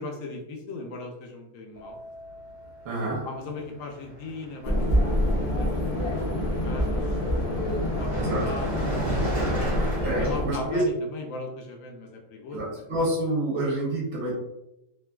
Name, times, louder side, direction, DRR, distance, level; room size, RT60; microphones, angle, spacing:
voice 1, 0.0-2.0 3.2-7.1 7.5-8.7 9.1-9.2 10.2-12.6, left 2 dB, 70° left, 2 dB, 0.9 m, -38 dB
Keyboard (musical), 1.7-4.2, equal, 25° right, 0.5 m, -48 dB
voice 2, 2.8-3.3 8.2-8.5 10.0-10.8 12.5-14.3, right 1 dB, 70° right, -4 dB, 1.2 m, -28 dB
Car passing by, 2.9-3.1 3.4-10.4, right 1 dB, 45° right, 1.1 m, -35 dB
sound 1, 4.6-10.9, equal, 50° left, 0.4 m, -26 dB
3.0 x 2.4 x 2.2 m, 0.91 s
omnidirectional pair, 1.6 m